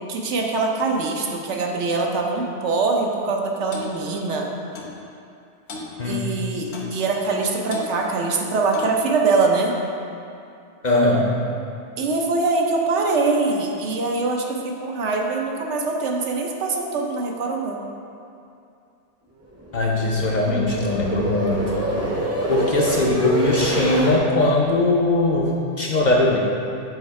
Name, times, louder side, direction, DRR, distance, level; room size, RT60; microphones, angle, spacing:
voice 1, 0.1-4.5 6.0-9.7 12.0-17.8, right 3 dB, 80° right, 1 dB, 1.0 m, -23 dB
Clock, 3.7-3.9 4.7-5.0 5.7-5.9 6.7-7.0 7.7-7.9 8.7-9.0, left 2 dB, 70° left, 1.0 m, -35 dB
voice 2, 10.8-11.3 19.7-21.9 22.5-26.4, left 2 dB, 50° left, -2 dB, 0.6 m, -20 dB
sound 1, 19.5-24.2, right 2 dB, 20° right, 0.5 m, -26 dB
7.0 x 3.1 x 4.6 m, 2.5 s
omnidirectional pair, 1.2 m